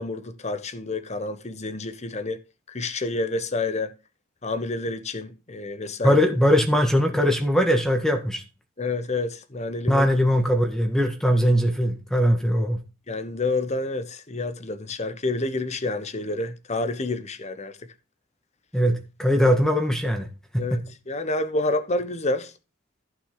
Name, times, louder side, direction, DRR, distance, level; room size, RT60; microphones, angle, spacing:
voice 1, 0.0-2.4 2.7-3.9 4.4-6.2 8.8-10.1 13.1-17.7 20.6-22.5, left 2 dB, 35° left, 1.0 m, -29 dB
voice 2, 6.0-8.4 9.9-12.8 18.7-20.3 20.5-20.8, equal, 5° left, 1.9 m, -21 dB
14.5 x 6.0 x 3.8 m
head